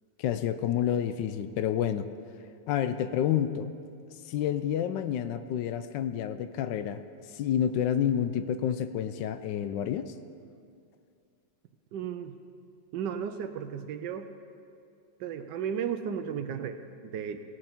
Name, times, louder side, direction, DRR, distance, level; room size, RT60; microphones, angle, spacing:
voice 1, 0.2-2.1 2.7-3.7 4.3-7.0 7.3-10.1, left 9 dB, 75° left, 11 dB, 1.2 m, -29 dB
voice 2, 11.9-12.3 12.9-14.3 15.2-17.4, right 8 dB, 75° right, 9 dB, 1.2 m, -34 dB
17.5 x 8.7 x 4.4 m, 2.4 s
omnidirectional pair, 2.0 m